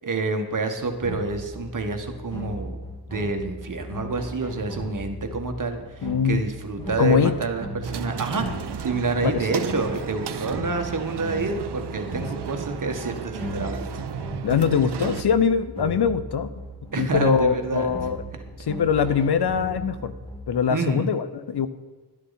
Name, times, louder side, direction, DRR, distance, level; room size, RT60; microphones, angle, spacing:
voice 1, 0.0-2.8 3.1-13.9 16.9-17.9 20.7-21.1, right 3 dB, 50° right, 5 dB, 1.6 m, -28 dB
sound 1, 0.8-20.6, equal, 15° left, 3.3 m, -37 dB
voice 2, 6.0-6.4 7.0-7.3 9.3-9.4 14.4-16.5 17.0-18.2 18.6-20.1 20.5-21.7, left 6 dB, 75° left, 12 dB, 0.8 m, -22 dB
sound 2, 7.8-15.2, right 8 dB, 90° right, 0.8 m, -34 dB
11.5 x 11.5 x 4.1 m, 1.3 s
wide cardioid pair, 95°, 39 cm